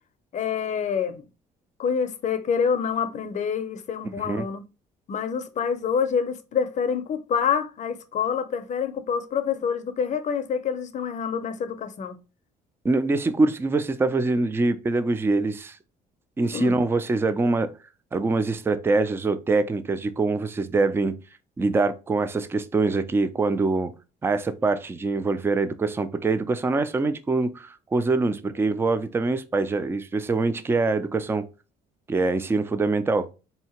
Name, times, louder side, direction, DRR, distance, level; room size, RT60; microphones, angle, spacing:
voice 1, 0.3-1.2 1.8-4.6 5.1-12.2 16.5-16.8, left 7 dB, 45° left, 0.6 m, -27 dB
voice 2, 12.8-15.8 16.4-17.7 18.1-21.2 21.6-23.9 24.2-31.4 32.1-33.3, right 3 dB, 15° right, 0.4 m, -24 dB
4.2 x 2.8 x 2.9 m
cardioid pair, 110°, 17 cm